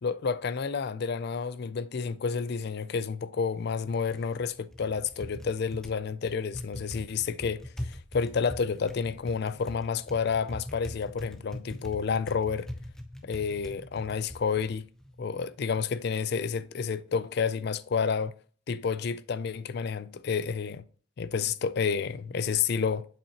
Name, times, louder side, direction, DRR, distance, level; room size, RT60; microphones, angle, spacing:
voice 1, 0.0-12.7 13.2-14.9 15.2-18.3 18.7-20.8 21.2-23.1, left 6 dB, 50° left, 0.4 m, -30 dB
Typing, 3.5-15.9, left 1 dB, ahead, 0.6 m, -43 dB
7.2 x 5.6 x 2.9 m
head